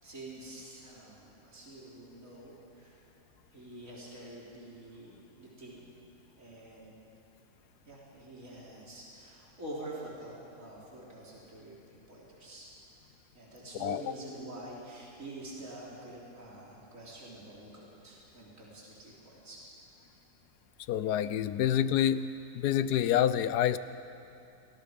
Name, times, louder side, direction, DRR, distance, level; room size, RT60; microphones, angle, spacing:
voice 1, 0.0-3.0 3.5-5.8 6.4-7.0 7.9-11.8 12.1-12.7 13.3-19.6, right 1 dB, 55° right, -6 dB, 4.2 m, -46 dB
voice 2, 13.8-14.1 20.9-22.3 22.5-23.8, left 10 dB, 80° left, 14 dB, 1.3 m, -27 dB
29.0 x 20.0 x 5.3 m, 2.7 s
omnidirectional pair, 1.7 m